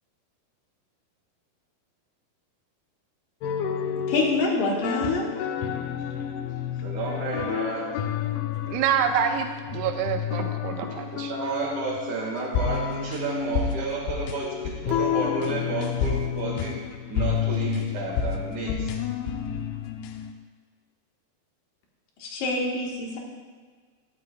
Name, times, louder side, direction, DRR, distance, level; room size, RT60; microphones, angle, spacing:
sound 1, 3.4-20.3, left 8 dB, 80° left, 2.3 m, -30 dB
voice 1, 4.1-5.2 22.2-23.2, left 3 dB, 65° left, -1 dB, 2.5 m, -25 dB
voice 2, 6.8-7.9 10.9-16.8 17.1-19.0, right 3 dB, 55° right, -3 dB, 2.5 m, -31 dB
voice 3, 8.7-11.3, right 8 dB, 80° right, 4 dB, 2.4 m, -27 dB
13.0 x 11.5 x 2.3 m, 1.5 s
omnidirectional pair, 4.9 m